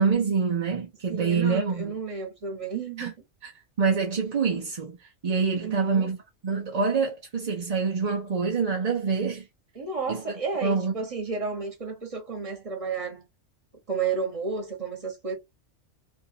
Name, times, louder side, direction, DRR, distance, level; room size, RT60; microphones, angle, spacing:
voice 1, 0.0-2.0 3.0-3.1 3.8-6.2 6.4-9.5 10.1-10.2 10.6-10.9, right 5 dB, 45° right, 0.5 m, -26 dB
voice 2, 1.1-3.1 5.6-6.1 9.7-13.3 13.9-15.3, right 5 dB, 30° right, 1.1 m, -32 dB
2.7 x 2.4 x 2.6 m
omnidirectional pair, 1.3 m